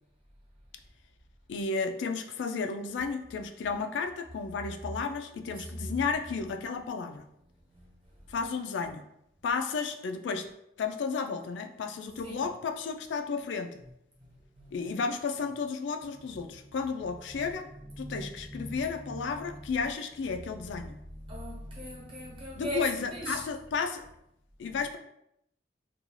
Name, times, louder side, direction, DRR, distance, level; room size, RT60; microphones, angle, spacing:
voice 1, 1.5-7.3 8.3-9.0 9.4-10.5 10.8-13.7 14.7-17.7 18.0-21.0 22.6-24.1 24.6-25.0, left 5 dB, 80° left, 6 dB, 0.3 m, -33 dB
voice 2, 5.6-6.1 7.4-8.3 12.2-12.5 14.2-15.0 16.1-19.9 20.3-23.4 24.7-24.8, right 1 dB, 30° right, -4 dB, 0.8 m, -42 dB
2.6 x 2.3 x 3.0 m, 0.77 s
head